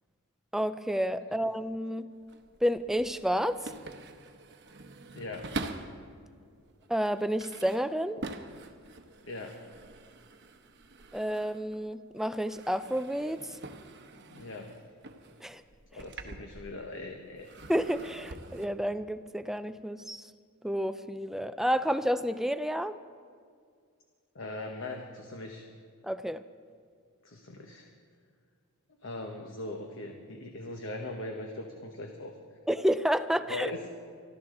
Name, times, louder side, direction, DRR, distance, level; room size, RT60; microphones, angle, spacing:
voice 1, 0.5-2.1 2.6-3.6 6.9-8.2 11.1-13.6 15.4-15.6 17.7-20.3 20.6-23.0 26.0-26.4 32.7-33.7, equal, ahead, 11 dB, 0.3 m, -30 dB
sound 1, 2.1-6.1 6.6-11.9 12.2-17.0 17.4-18.7, right 2 dB, 50° right, 0.9 m, -45 dB
voice 2, 5.1-5.5 9.2-9.6 14.3-14.8 15.9-17.5 24.3-25.6 27.2-27.9 29.0-32.3 33.5-33.8, left 2 dB, 60° left, 3 dB, 1.1 m, -40 dB
25.0 x 12.5 x 3.8 m, 2.1 s
head